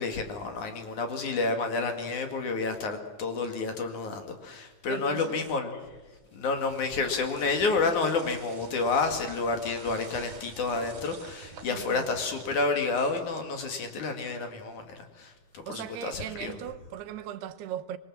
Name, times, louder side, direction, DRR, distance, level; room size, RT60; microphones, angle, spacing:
voice 1, 0.0-5.9 6.3-16.6, left 4 dB, 55° left, 3.2 m, -30 dB
voice 2, 4.9-5.4 11.7-12.1 15.7-18.0, right 11 dB, 85° right, 3.0 m, -38 dB
sound 1, 6.2-14.0, right 5 dB, 50° right, 3.9 m, -48 dB
25.5 x 22.5 x 7.5 m
omnidirectional pair, 4.6 m